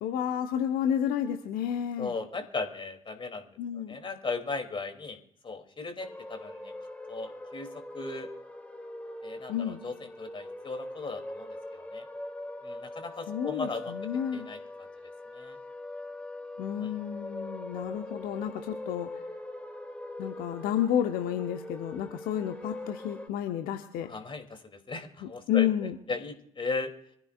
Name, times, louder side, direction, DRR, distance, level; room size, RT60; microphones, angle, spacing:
voice 1, 0.0-2.1 3.6-4.0 9.5-9.8 13.3-14.5 16.6-19.1 20.2-24.1 25.2-26.0, left 10 dB, 60° left, 5 dB, 1.2 m, -31 dB
voice 2, 2.0-3.5 3.9-5.2 5.4-6.7 7.1-7.7 7.9-8.3 9.2-12.0 12.6-13.9 14.3-14.6 15.3-15.5 16.8-16.9 24.1-25.7 26.1-26.9, left 3 dB, 30° left, 5 dB, 3.1 m, -36 dB
sound 1, 6.0-23.3, left 1 dB, 10° left, 2.7 m, -42 dB
25.5 x 15.0 x 2.5 m, 0.70 s
figure-of-eight pair, 50°, 16 cm